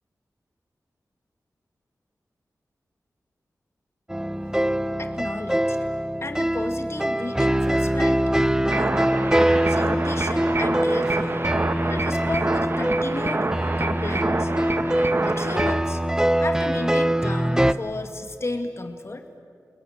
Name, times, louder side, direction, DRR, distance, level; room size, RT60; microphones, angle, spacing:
sound 1, 4.1-17.7, right 1 dB, 10° right, 0.9 m, -23 dB
voice 1, 5.0-5.8 6.2-8.3 8.6-9.1 9.7-13.5 13.8-14.5 15.2-16.0 16.4-19.3, left 2 dB, 45° left, 6 dB, 2.1 m, -33 dB
sound 2, 8.7-15.8, right 2 dB, 35° right, 1.6 m, -27 dB
28.5 x 22.0 x 9.0 m, 2.2 s
cardioid pair, 55°, 6 cm